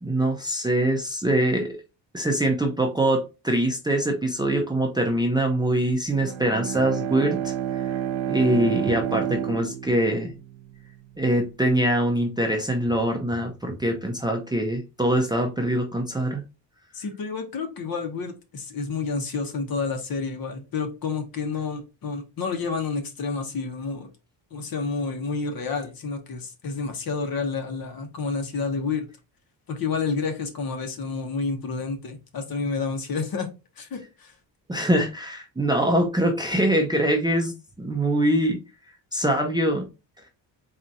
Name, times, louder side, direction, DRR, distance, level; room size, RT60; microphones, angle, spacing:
voice 1, 0.0-1.8 2.1-7.8 8.3-10.3 11.2-16.4 34.7-37.5 37.8-38.6 39.1-39.9, right 1 dB, 10° right, 2 dB, 0.5 m, -23 dB
Bowed string instrument, 6.1-10.9, right 10 dB, 80° right, 0.8 m, -29 dB
voice 2, 16.9-24.1 24.5-29.1 29.7-33.5 33.8-34.3, left 4 dB, 50° left, 5 dB, 1.0 m, -29 dB
4.1 x 2.5 x 4.0 m, 0.28 s
wide cardioid pair, 160°, 45 cm